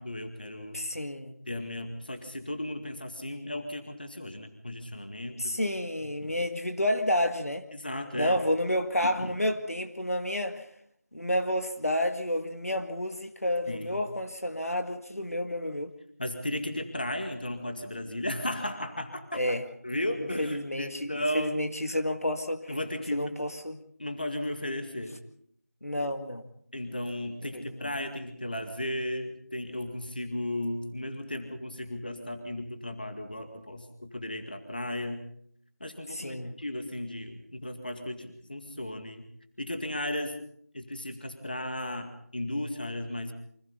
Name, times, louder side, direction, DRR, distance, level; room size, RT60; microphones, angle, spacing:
voice 1, 0.0-0.8 1.5-5.6 6.2-6.3 7.7-8.4 9.0-9.3 13.7-14.0 16.2-19.4 19.8-21.6 21.9-22.0 22.7-23.3 24.0-25.2 26.7-35.2 35.8-39.3 39.6-40.4 40.7-43.3, left 1 dB, 35° left, 7 dB, 2.0 m, -35 dB
voice 2, 0.7-1.3 5.4-7.7 8.1-10.7 11.1-15.9 19.3-19.6 20.2-22.8 23.1-23.8 25.8-26.5 27.4-27.9 36.1-36.6, left 1 dB, 60° left, 7 dB, 2.0 m, -30 dB
28.0 x 25.5 x 4.1 m, 0.65 s
figure-of-eight pair, 175°, 9 cm